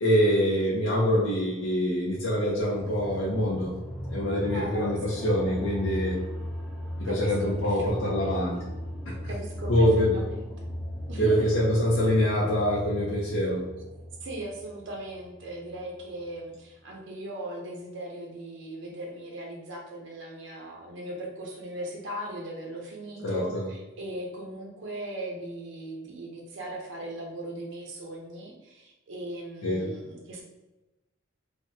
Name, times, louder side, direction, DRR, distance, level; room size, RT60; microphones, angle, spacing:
voice 1, 0.0-3.7 4.1-6.2 7.0-8.6 9.1-9.2 9.7-10.2 11.2-13.7 23.2-23.7 29.6-29.9, equal, 75° left, -6 dB, 0.6 m, -25 dB
sound 1, 2.7-16.4, equal, 5° left, 0.4 m, -37 dB
voice 2, 4.5-5.5 7.1-8.7 9.3-9.9 10.1-10.7 11.1-11.5 14.2-30.4, right 1 dB, 65° right, -1 dB, 0.5 m, -39 dB
3.4 x 2.1 x 2.7 m, 1.1 s
head